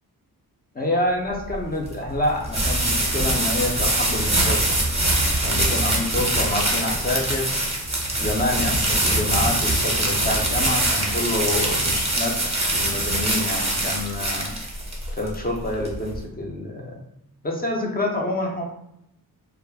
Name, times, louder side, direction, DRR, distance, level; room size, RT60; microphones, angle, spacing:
voice 1, 0.7-4.8 5.4-7.5 8.2-14.6 15.2-16.9 17.4-18.6, left 1 dB, 25° left, 0 dB, 0.5 m, -27 dB
sound 1, 1.3-16.2, right 1 dB, 15° right, 0.7 m, -23 dB
2.4 x 2.1 x 3.3 m, 0.79 s
wide cardioid pair, 90°, 38 cm